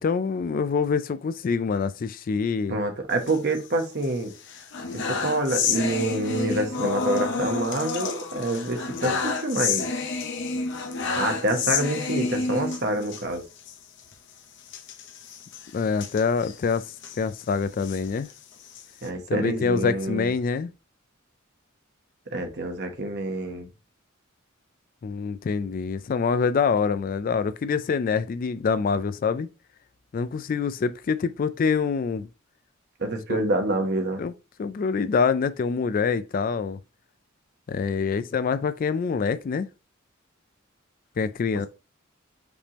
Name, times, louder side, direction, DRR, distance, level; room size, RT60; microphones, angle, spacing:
voice 1, 0.0-2.8 15.7-18.3 19.3-20.7 25.0-29.5 30.1-32.3 33.3-33.4 34.2-34.3 34.6-36.8 37.7-39.7 41.2-41.7, left 5 dB, 40° left, 0.3 m, -25 dB
voice 2, 2.7-4.3 5.0-9.9 11.2-13.4 19.0-20.3 22.3-23.7 33.0-34.2, right 2 dB, 50° right, 1.0 m, -27 dB
sound 1, 3.1-4.1 4.4-13.2 13.6-13.7 14.0-14.1 14.7-17.2 17.7-19.1, left 4 dB, 60° left, 0.8 m, -30 dB
5.2 x 3.4 x 2.9 m
head